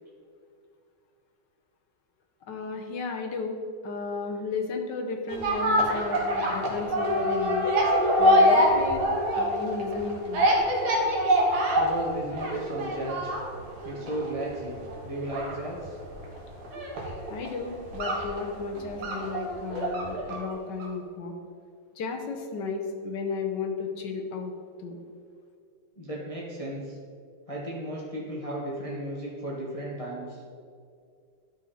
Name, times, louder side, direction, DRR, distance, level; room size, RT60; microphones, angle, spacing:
voice 1, 2.5-3.6 3.8-7.7 8.2-9.1 9.4-10.5 17.3-21.3 22.0-24.5 24.8-25.0, left 4 dB, 60° left, 3 dB, 1.4 m, -33 dB
sound 1, 5.3-20.5 20.8-20.9, equal, 70° right, 2.2 m, -25 dB
voice 2, 11.8-13.3 13.8-16.0 26.0-27.0 27.5-30.4, right 1 dB, 20° left, -5 dB, 1.1 m, -35 dB
11.5 x 5.5 x 4.2 m, 2.3 s
omnidirectional pair, 2.4 m